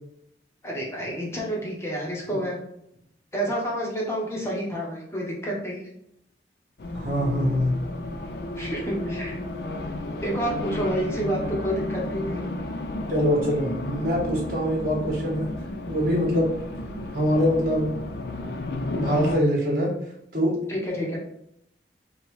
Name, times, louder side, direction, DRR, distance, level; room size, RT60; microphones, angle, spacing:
voice 1, 0.6-2.6 3.3-5.8 8.5-9.4 10.2-12.4 20.7-21.2, right 1 dB, 15° left, -3 dB, 1.0 m, -29 dB
Race car auto racing, 6.8-19.4, left 1 dB, 60° left, 0.5 m, -33 dB
voice 2, 6.9-7.7 13.1-15.5 15.9-16.5 17.1-17.9 18.9-19.9 20.3-20.6, equal, 55° right, -3 dB, 1.5 m, -23 dB
5.0 x 2.4 x 3.1 m, 0.75 s
head